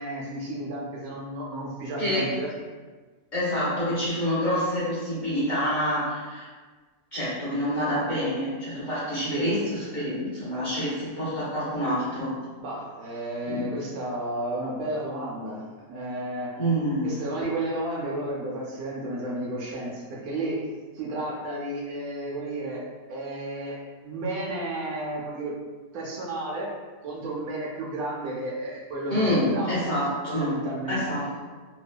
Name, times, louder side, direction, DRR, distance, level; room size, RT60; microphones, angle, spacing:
voice 1, 0.0-2.5 9.2-9.5 12.6-16.6 17.0-20.7 20.9-25.6 25.9-26.7 27.0-29.8 30.3-31.1, right 1 dB, 75° right, -3 dB, 1.0 m, -32 dB
voice 2, 2.0-2.4 3.3-6.5 7.1-12.3 13.5-13.7 16.6-17.1 29.1-30.5 30.9-31.4, equal, 40° left, -11 dB, 0.7 m, -27 dB
2.8 x 2.2 x 2.2 m, 1.4 s
omnidirectional pair, 1.6 m